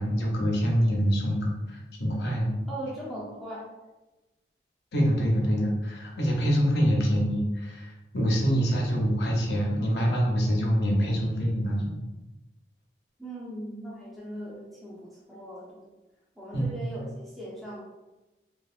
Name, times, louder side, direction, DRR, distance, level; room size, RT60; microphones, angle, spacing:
voice 1, 0.0-2.6 4.9-11.9 16.5-16.8, equal, 75° left, -1 dB, 0.7 m, -25 dB
voice 2, 2.7-3.7 13.2-15.9 16.4-17.8, right 1 dB, ahead, -7 dB, 0.5 m, -39 dB
2.9 x 2.3 x 2.4 m, 1.1 s
head